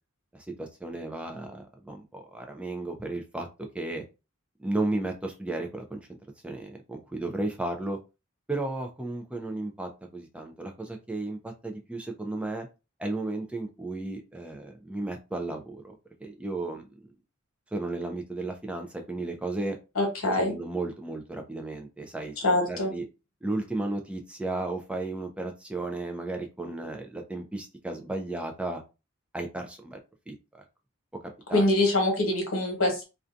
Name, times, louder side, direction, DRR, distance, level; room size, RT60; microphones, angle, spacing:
voice 1, 0.3-3.5 3.7-4.0 4.6-6.1 6.4-8.0 8.5-12.7 13.0-17.0 17.7-19.8 20.4-22.4 22.7-23.0 23.4-28.8 29.3-30.0 30.3-30.4 31.5-31.7, right 2 dB, 5° right, 4 dB, 0.3 m, -34 dB
voice 2, 20.0-20.5 22.4-22.9 31.5-33.0, left 2 dB, 85° left, 2 dB, 1.0 m, -24 dB
2.5 x 2.2 x 2.5 m, 0.28 s
head